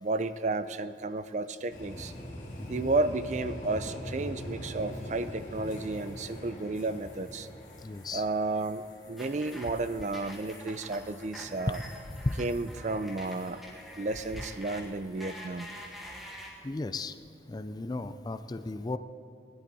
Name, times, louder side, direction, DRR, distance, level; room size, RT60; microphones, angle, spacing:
voice 1, 0.0-2.1 2.7-7.5 8.1-11.8 12.4-13.6 14.0-15.7, right 2 dB, 40° right, 13 dB, 0.4 m, -32 dB
sound 1, 1.7-13.5 13.9-14.3 16.2-16.6, left 1 dB, 40° left, 2.2 m, -44 dB
voice 2, 2.6-2.9 7.8-8.2 11.7-11.8 12.2-12.4 16.6-17.2 17.5-19.0, left 2 dB, 20° left, 11 dB, 0.4 m, -34 dB
sound 2, 9.2-16.5, equal, ahead, 1.9 m, -46 dB
19.5 x 11.0 x 4.1 m, 2.7 s
head